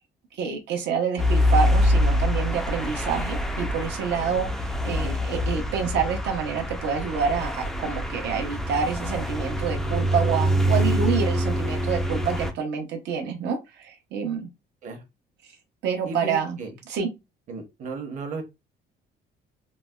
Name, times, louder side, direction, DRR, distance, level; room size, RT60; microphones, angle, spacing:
voice 1, 0.3-14.5 15.4-15.5 15.8-16.6 16.9-17.1, right 6 dB, 75° right, 0.7 m, -28 dB
sound 1, 1.2-12.5, equal, ahead, 0.3 m, -25 dB
voice 2, 16.0-16.8 17.5-18.4, right 3 dB, 45° right, 0.9 m, -35 dB
4.0 x 2.1 x 2.3 m
cardioid pair, 170°, 18 cm